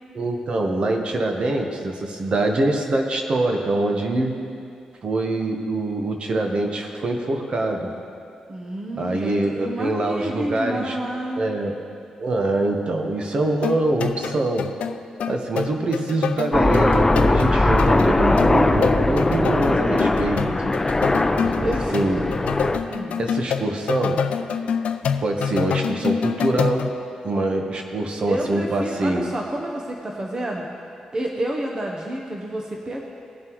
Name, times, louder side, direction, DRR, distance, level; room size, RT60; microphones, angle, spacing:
voice 1, 0.1-4.4 5.0-7.9 9.0-11.0 11.4-11.7 12.2-14.7 15.3-20.7 21.6-22.2 23.2-24.2 25.2-26.9 27.2-29.3, right 2 dB, 55° right, 2 dB, 1.2 m, -24 dB
voice 2, 8.5-11.4 21.6-21.9 22.9-23.2 28.2-30.7 31.1-33.0, right 1 dB, 35° right, 0 dB, 0.9 m, -29 dB
sound 1, 13.6-26.9, left 7 dB, 80° left, 0.4 m, -27 dB
Aircraft, 16.5-22.8, left 2 dB, 20° left, 0.6 m, -20 dB
18.0 x 7.4 x 3.1 m, 2.4 s
cardioid pair, 90°, 2 cm